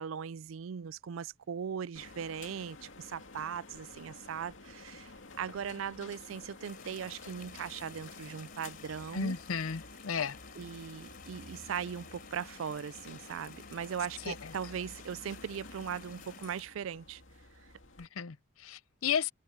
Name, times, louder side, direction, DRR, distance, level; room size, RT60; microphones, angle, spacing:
voice 1, 0.0-5.1 5.4-9.4 10.6-17.2, right 7 dB, 70° right, 0.4 m, -39 dB
sound 1, 1.9-18.1, left 3 dB, 65° left, 2.7 m, -51 dB
sound 2, 6.6-16.6, left 7 dB, 45° left, 3.5 m, -54 dB
voice 2, 9.1-10.4 14.3-14.5 18.0-19.3, left 6 dB, 80° left, 0.6 m, -34 dB
head